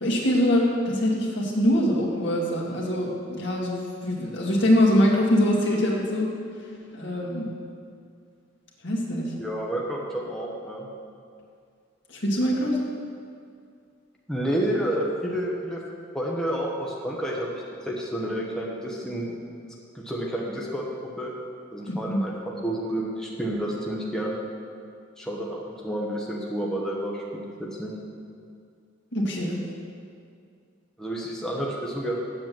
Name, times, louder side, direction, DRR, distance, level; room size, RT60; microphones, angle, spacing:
voice 1, 0.0-6.3 6.9-7.5 8.8-9.3 12.1-12.8 21.9-22.2 29.1-29.6, equal, 65° left, -3 dB, 2.0 m, -23 dB
voice 2, 9.4-10.9 14.3-15.8 16.1-19.4 19.9-20.9 21.2-21.3 21.7-24.3 25.2-25.6 25.8-27.9 31.0-32.2, right 1 dB, 5° left, -3 dB, 1.0 m, -30 dB
7.7 x 7.7 x 7.4 m, 2.3 s
head